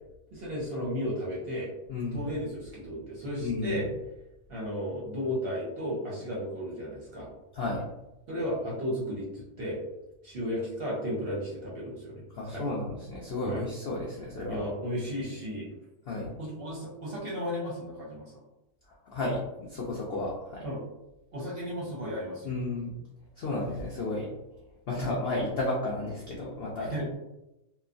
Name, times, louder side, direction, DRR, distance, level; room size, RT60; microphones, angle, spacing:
voice 1, 0.3-1.7 2.1-3.9 4.5-7.3 8.3-9.8 10.2-12.2 12.5-12.7 13.4-13.6 14.5-15.7 16.4-18.3 20.6-20.8 21.3-22.5 26.8-27.2, equal, 55° right, -5 dB, 0.7 m, -34 dB
voice 2, 1.9-2.3 3.4-3.9 7.5-7.8 12.3-14.6 16.1-16.3 19.1-20.6 22.4-22.9 23.4-24.3 24.9-26.9, left 2 dB, 80° left, -4 dB, 0.5 m, -32 dB
3.0 x 2.1 x 2.4 m, 0.94 s
omnidirectional pair, 1.6 m